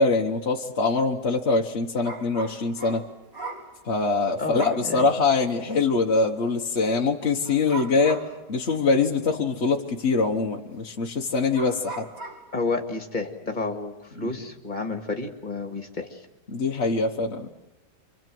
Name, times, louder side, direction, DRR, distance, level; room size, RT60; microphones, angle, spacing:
voice 1, 0.0-3.0 3.8-8.2 8.5-12.1 14.2-14.3 16.5-17.5, left 3 dB, 45° left, 0 dB, 1.4 m, -23 dB
sound 1, 2.0-3.7 4.6-4.9 5.5-5.6 7.4-8.4 9.1-9.2 10.9-11.0 11.5-12.5, right 3 dB, 80° right, 4.4 m, -38 dB
voice 2, 4.4-5.1 12.5-16.2, left 3 dB, 25° left, 4 dB, 2.3 m, -30 dB
29.0 x 24.5 x 7.8 m, 1.0 s
omnidirectional pair, 1.8 m